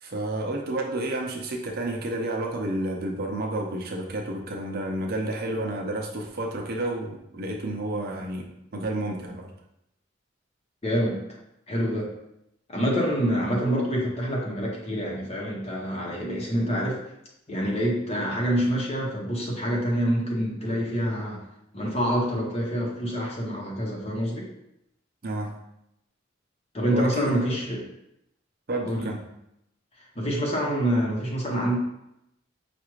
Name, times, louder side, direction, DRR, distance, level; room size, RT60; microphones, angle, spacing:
voice 1, 0.0-9.5 25.2-25.5 26.9-27.4 28.7-29.2, right 1 dB, 55° right, 0 dB, 0.6 m, -30 dB
voice 2, 10.8-11.2 11.7-12.1 12.7-17.0 17.5-21.4 21.7-24.5 26.7-27.8 28.8-29.1 30.0-31.8, equal, 35° left, -2 dB, 0.9 m, -26 dB
5.9 x 2.5 x 3.1 m, 0.82 s
head